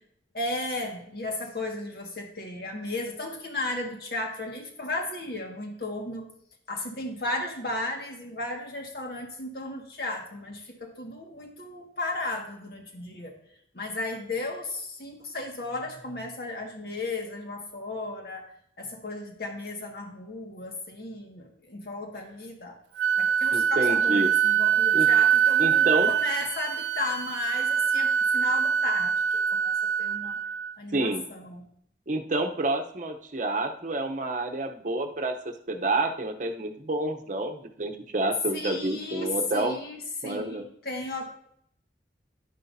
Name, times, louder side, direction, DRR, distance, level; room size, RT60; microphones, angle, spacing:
voice 1, 0.3-6.3 6.7-13.3 13.7-18.5 18.8-22.7 23.2-30.4 30.8-31.7 38.5-40.0 40.2-41.3, left 2 dB, 60° left, 1 dB, 1.8 m, -35 dB
Wind instrument woodwind instrument, 23.0-30.7, right 8 dB, 80° right, 0.3 m, -24 dB
voice 2, 23.5-24.3 24.9-25.1 25.6-26.1 30.9-31.3 32.1-39.7 40.2-40.6, right 2 dB, 45° right, 5 dB, 0.9 m, -29 dB
11.0 x 10.0 x 2.7 m, 0.70 s
head